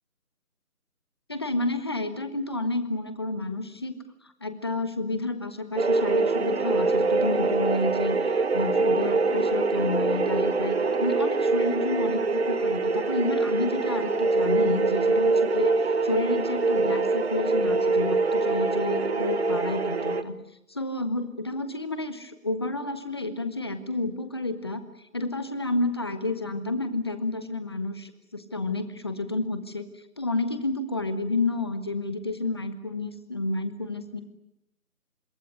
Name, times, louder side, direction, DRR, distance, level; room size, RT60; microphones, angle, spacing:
voice 1, 1.3-4.0 4.4-8.2 8.5-20.4 20.7-24.8 25.1-29.9 30.2-34.2, left 2 dB, 15° left, 10 dB, 1.1 m, -30 dB
sound 1, 5.8-20.2, right 3 dB, 45° right, 1.5 m, -24 dB
26.0 x 21.5 x 9.8 m, 0.81 s
figure-of-eight pair, 170°, 45 cm